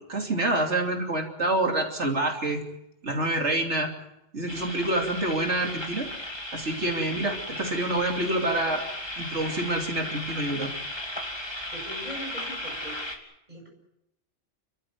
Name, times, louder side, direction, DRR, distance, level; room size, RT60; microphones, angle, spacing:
voice 1, 0.0-2.6 3.0-3.9 4.3-6.1 6.5-8.8 9.2-10.7, right 2 dB, 75° right, 2 dB, 3.4 m, -27 dB
sound 1, 4.5-13.1, left 1 dB, 20° left, 2.9 m, -36 dB
voice 2, 11.7-13.1 13.5-13.7, equal, 40° right, 0 dB, 7.7 m, -41 dB
29.5 x 13.5 x 9.6 m, 0.85 s
omnidirectional pair, 1.2 m